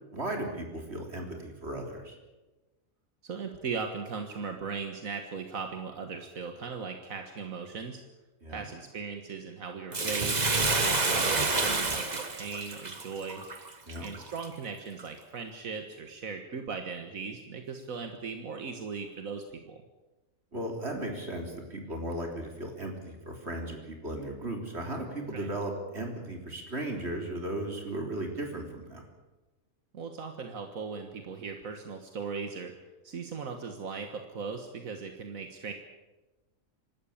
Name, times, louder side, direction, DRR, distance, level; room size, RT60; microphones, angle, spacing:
voice 1, 0.1-2.2 8.4-8.6 13.9-14.0 20.5-29.0, right 1 dB, 50° right, 2 dB, 4.0 m, -36 dB
voice 2, 3.2-8.0 8.5-13.4 14.0-19.8 25.3-25.5 29.9-32.7 33.0-35.7, right 5 dB, 80° right, 5 dB, 1.9 m, -38 dB
Bathtub (filling or washing), 9.9-14.5 15.0-15.1, right 3 dB, 30° right, 1.6 m, -28 dB
25.5 x 13.0 x 8.7 m, 1.1 s
omnidirectional pair, 1.4 m